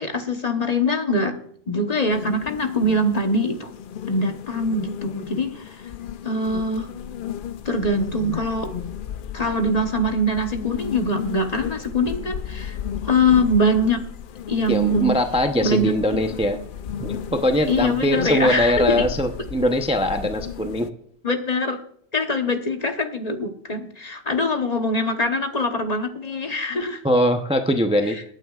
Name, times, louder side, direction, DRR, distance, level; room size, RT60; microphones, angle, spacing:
voice 1, 0.0-1.4 1.7-3.7 4.1-5.8 6.2-6.9 7.6-8.7 9.3-12.8 13.0-14.1 14.5-15.2 15.6-16.2 17.7-19.0 21.2-21.8 22.1-27.0 28.1-28.2, left 1 dB, 40° left, 6 dB, 1.1 m, -23 dB
sound 1, 2.1-20.9, left 9 dB, 60° left, 0.6 m, -34 dB
voice 2, 14.7-16.6 17.0-20.9 27.0-28.2, equal, 5° right, 6 dB, 0.6 m, -21 dB
21.5 x 9.3 x 2.4 m, 0.64 s
omnidirectional pair, 1.1 m